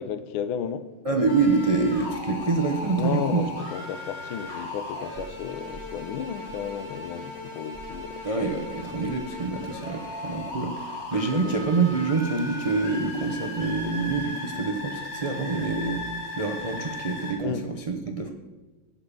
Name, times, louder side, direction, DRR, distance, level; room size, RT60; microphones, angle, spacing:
voice 1, 0.0-0.9 3.0-8.6 11.1-11.6 17.4-17.7, left 8 dB, 85° left, 1.5 m, -33 dB
voice 2, 1.0-3.4 8.2-18.3, right 4 dB, 65° right, 0.3 m, -26 dB
sound 1, 1.3-17.3, left 2 dB, 35° left, 2.2 m, -37 dB
14.0 x 5.8 x 6.9 m
omnidirectional pair, 2.2 m